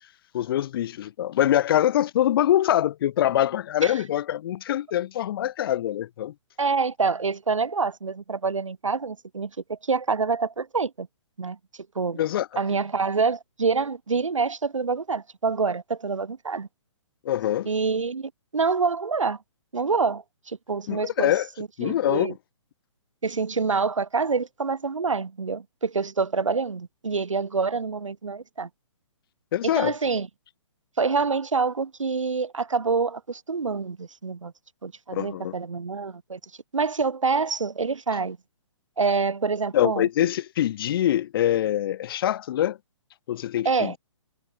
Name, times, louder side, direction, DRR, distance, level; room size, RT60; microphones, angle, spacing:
voice 1, 0.3-6.3 12.2-12.5 17.2-17.7 20.9-21.5 21.8-22.3 29.5-30.0 35.1-35.5 39.7-42.8 43.3-44.0, left 12 dB, 50° left, 4.1 m, -24 dB
voice 2, 6.6-11.1 11.4-11.6 11.9-12.2 12.6-16.7 17.7-19.4 19.7-21.3 21.6-22.3 23.2-28.7 29.7-30.3 31.0-34.5 34.8-36.4 36.7-38.4 39.0-40.3 43.6-44.0, right 4 dB, 85° right, 4.4 m, -26 dB
hypercardioid pair, 140°, 16 cm